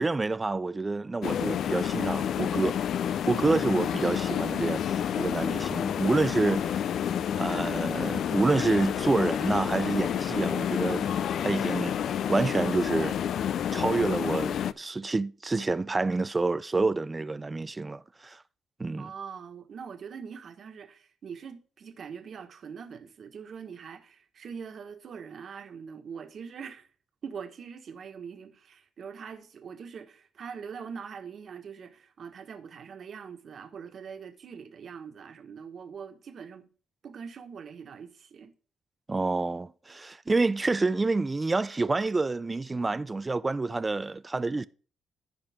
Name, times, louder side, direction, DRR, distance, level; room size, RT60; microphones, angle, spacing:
voice 1, 0.0-2.8 3.3-6.8 7.4-11.1 11.4-11.9 12.3-13.2 13.7-18.4 18.8-19.1 39.1-44.7, right 3 dB, 20° right, 0.4 m, -28 dB
sound 1, 1.2-14.7, left 9 dB, 65° left, 0.4 m, -29 dB
voice 2, 19.0-26.9 27.2-36.7 37.0-38.5, right 6 dB, 55° right, 1.5 m, -43 dB
15.0 x 5.1 x 3.6 m
cardioid pair, 90°, 0 cm